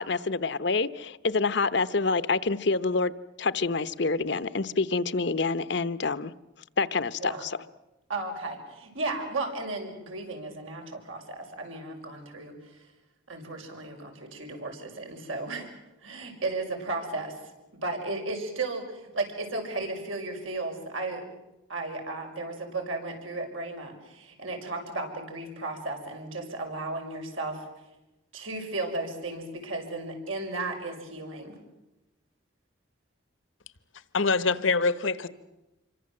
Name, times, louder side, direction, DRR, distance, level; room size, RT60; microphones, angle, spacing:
voice 1, 0.0-3.1 3.4-6.3 6.8-7.6, left 4 dB, 60° left, 0.9 m, -27 dB
voice 2, 8.1-12.5 13.3-15.7 16.0-17.3 17.7-21.3 21.7-27.6 28.3-31.6, right 2 dB, 90° right, 6.1 m, -34 dB
voice 3, 34.1-35.3, left 4 dB, 80° left, 1.3 m, -24 dB
27.0 x 24.0 x 7.7 m
head